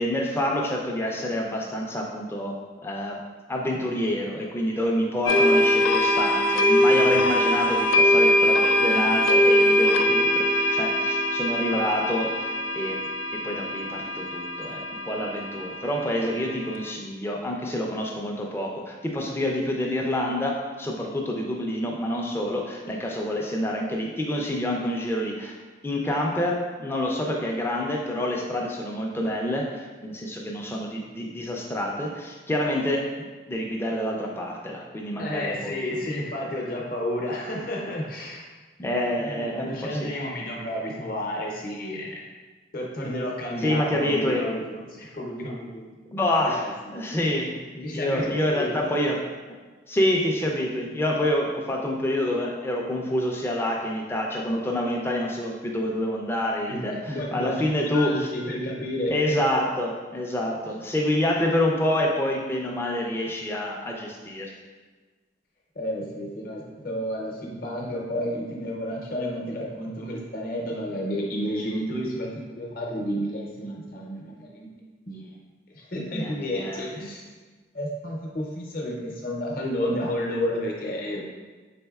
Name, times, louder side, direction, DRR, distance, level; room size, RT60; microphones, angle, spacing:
voice 1, 0.0-3.2 3.5-13.0 13.3-25.5 25.8-36.0 38.8-40.1 43.6-44.4 46.1-46.6 46.9-49.2 49.9-58.3 59.1-64.5 76.1-76.9, left 1 dB, 10° left, -1 dB, 0.4 m, -27 dB
sound 1, 5.3-16.9, left 1 dB, 85° left, 0.3 m, -22 dB
voice 2, 35.2-38.5 39.2-42.2 42.7-45.9 46.5-47.1 47.8-48.7 56.7-59.4 65.8-72.3 72.6-74.7 75.1-75.3 75.7-77.2 77.7-81.2, equal, 50° left, -2 dB, 0.7 m, -31 dB
4.1 x 3.5 x 2.3 m, 1.4 s
head